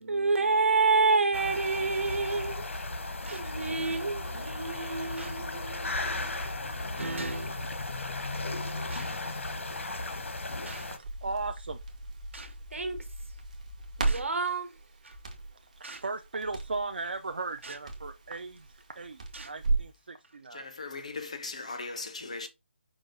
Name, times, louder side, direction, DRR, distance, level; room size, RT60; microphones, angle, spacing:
voice 1, 0.0-2.7 3.1-6.4 7.0-7.7 12.7-13.0 14.0-14.7, right 4 dB, 85° right, 1.2 m, -29 dB
sound 1, 1.3-11.0, left 2 dB, 90° left, 0.9 m, -35 dB
sound 2, 3.3-3.5 4.4-4.5 5.2-5.4 6.4-6.5 7.2-7.4 8.9-9.2 10.7-10.9 12.3-12.6 14.1-14.3 15.0-15.3 15.8-16.1 17.6-17.8 18.6-18.8 19.3-19.6 20.2-20.4, right 3 dB, 70° right, 0.9 m, -46 dB
Crackle, 10.7-19.9, right 3 dB, 35° right, 0.8 m, -36 dB
voice 2, 11.2-11.8 16.0-18.7 19.0-20.7, right 3 dB, 50° right, 0.3 m, -36 dB
voice 3, 20.5-22.5, left 3 dB, 30° left, 0.5 m, -38 dB
4.9 x 2.3 x 3.7 m
hypercardioid pair, 180°, 7 cm